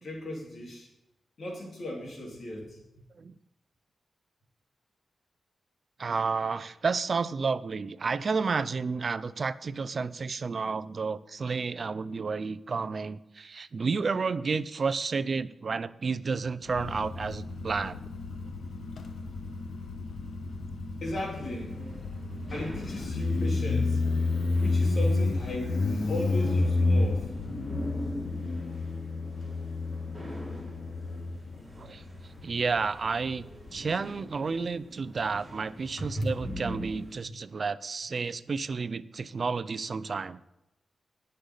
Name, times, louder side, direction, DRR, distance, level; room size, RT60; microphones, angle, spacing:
voice 1, 0.0-0.9 1.4-3.0 21.0-21.8 22.5-24.0 24.6-27.3 36.0-36.3, left 1 dB, 55° left, -2 dB, 3.8 m, -36 dB
voice 2, 6.0-18.0 31.8-32.1 32.4-40.4, right 4 dB, 50° right, 15 dB, 0.5 m, -31 dB
Motorcycle, 16.7-33.9, left 3 dB, 85° left, 1.2 m, -31 dB
sound 1, 21.1-37.2, equal, 5° left, 4.0 m, -43 dB
20.0 x 6.6 x 4.0 m, 0.91 s
wide cardioid pair, 115°, 0 cm